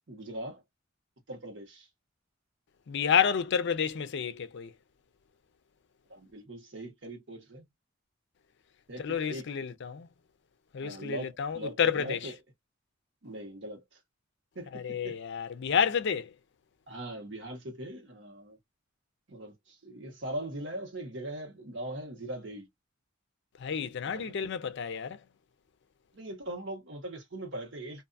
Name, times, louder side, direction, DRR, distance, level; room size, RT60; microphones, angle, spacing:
voice 1, 0.1-0.6 1.3-1.9 6.1-7.7 8.9-9.5 10.8-12.3 13.2-14.0 14.5-15.1 16.9-18.6 19.3-22.7 24.0-24.5 26.1-28.0, right 1 dB, 60° right, 1.2 m, -40 dB
voice 2, 2.9-4.7 9.0-10.1 10.7-12.3 14.7-16.3 23.6-25.2, left 7 dB, 60° left, 0.4 m, -30 dB
2.6 x 2.3 x 2.5 m
head